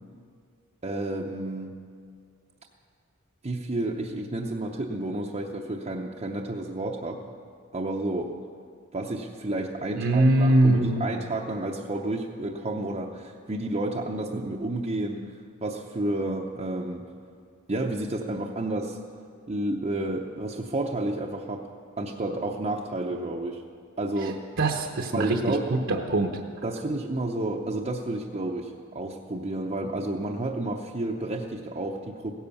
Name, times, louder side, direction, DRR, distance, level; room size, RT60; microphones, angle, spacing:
voice 1, 0.8-1.8 3.4-7.2 7.7-8.3 8.9-17.1 17.7-19.0 19.5-21.7 22.0-23.6 24.0-24.4 25.1-25.7 26.6-32.3, right 2 dB, 30° right, -1 dB, 0.7 m, -31 dB
voice 2, 10.0-11.2 24.2-24.3 24.6-26.3, right 2 dB, 60° right, 2 dB, 1.0 m, -22 dB
16.5 x 10.5 x 7.0 m, 2.1 s
head